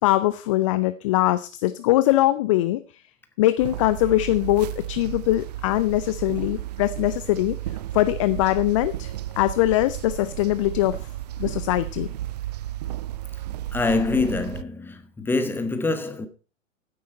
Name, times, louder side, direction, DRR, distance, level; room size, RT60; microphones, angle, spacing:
voice 1, 0.0-3.0 3.4-7.6 7.9-11.1 11.4-12.1, left 16 dB, 25° left, 0.6 m, -22 dB
sound 1, 3.6-14.6, right 13 dB, 30° right, 0.5 m, -33 dB
voice 2, 13.7-16.3, left 3 dB, 5° left, 1.3 m, -25 dB
15.5 x 10.0 x 4.4 m
figure-of-eight pair, 115°, 39 cm